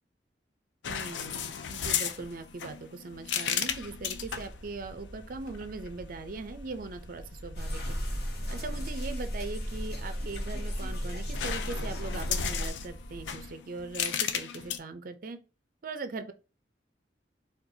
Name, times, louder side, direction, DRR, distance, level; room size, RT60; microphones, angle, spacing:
sound 1, 0.8-4.6 5.5-5.9 10.1-10.9 11.3-14.8, left 8 dB, 90° left, 0.4 m, -34 dB
voice 1, 0.9-8.0 8.5-15.4 15.8-16.3, right 3 dB, 50° right, 0.5 m, -40 dB
sound 2, 3.6-13.5, equal, 35° right, 1.3 m, -48 dB
sound 3, 7.5-12.7, equal, 65° left, 1.1 m, -34 dB
4.4 x 2.3 x 2.7 m
head